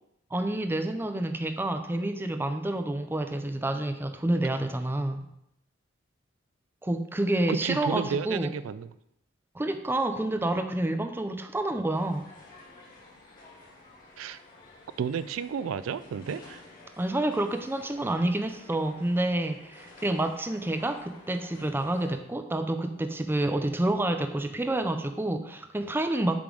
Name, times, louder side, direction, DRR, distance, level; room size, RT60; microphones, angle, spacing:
voice 1, 0.3-5.3 6.8-8.5 9.5-12.3 17.0-26.4, right 1 dB, 10° right, 7 dB, 0.4 m, -28 dB
voice 2, 7.5-8.9 14.2-14.4 15.0-16.6, right 7 dB, 90° right, 14 dB, 0.3 m, -32 dB
sound 1, 11.9-22.1, left 2 dB, 45° left, 1.9 m, -52 dB
7.0 x 4.8 x 3.8 m, 0.79 s
head